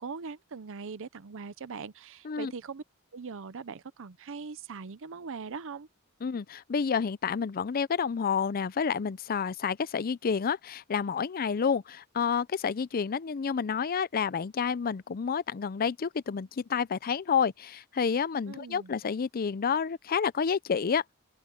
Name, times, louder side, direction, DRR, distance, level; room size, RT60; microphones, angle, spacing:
voice 1, 0.0-2.8 3.1-5.9 18.5-18.9, right 5 dB, 65° right, 0.7 m, -41 dB
voice 2, 6.2-21.1, left 6 dB, 45° left, 0.5 m, -29 dB
open air
head